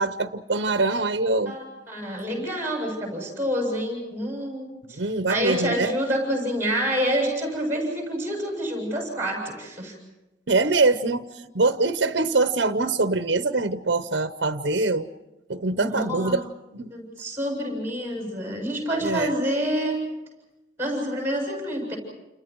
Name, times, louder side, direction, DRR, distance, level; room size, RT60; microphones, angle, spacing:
voice 1, 0.0-1.6 5.0-5.9 10.5-11.3 11.5-15.1 15.5-16.5 16.7-16.9 19.0-19.3, right 3 dB, 70° right, 0.9 m, -23 dB
voice 2, 1.5-10.0 15.7-16.4 16.9-20.0 20.8-22.0, equal, 15° right, 7.4 m, -28 dB
29.5 x 29.5 x 4.7 m
head